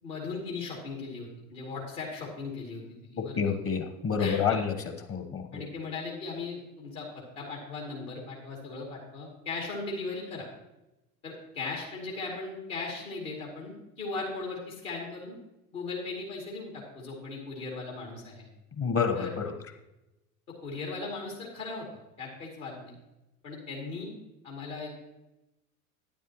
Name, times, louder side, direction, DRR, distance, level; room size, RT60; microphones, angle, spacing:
voice 1, 0.0-3.4 4.2-4.6 5.5-10.5 11.2-15.4 15.7-18.5 19.2-19.3 20.6-21.9 22.2-23.0 23.4-24.1 24.4-25.0, left 3 dB, 65° left, -1 dB, 2.7 m, -38 dB
voice 2, 3.2-4.7 5.1-5.6 18.8-19.5, left 6 dB, 30° left, 7 dB, 1.2 m, -28 dB
12.0 x 9.6 x 3.0 m, 0.96 s
figure-of-eight pair, 75°, 43 cm